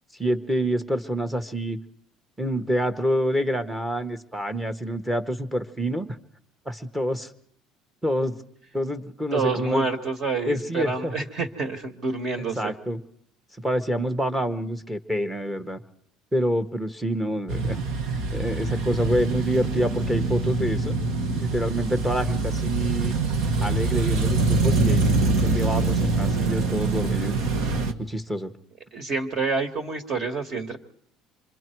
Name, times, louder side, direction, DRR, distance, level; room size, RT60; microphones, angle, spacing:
voice 1, 0.2-1.8 2.4-6.1 6.7-7.3 8.0-8.4 8.7-9.9 10.5-11.1 12.5-13.0 13.6-15.8 16.3-17.8 18.3-21.0 21.4-23.1 23.6-27.3 28.0-28.5, equal, 5° right, 7 dB, 1.2 m, -27 dB
voice 2, 9.3-12.7 28.9-30.8, right 4 dB, 40° right, 6 dB, 1.9 m, -28 dB
sound 1, 17.5-27.9, right 3 dB, 65° right, 1.8 m, -24 dB
27.0 x 24.0 x 4.6 m, 0.67 s
cardioid pair, 155°, 0 cm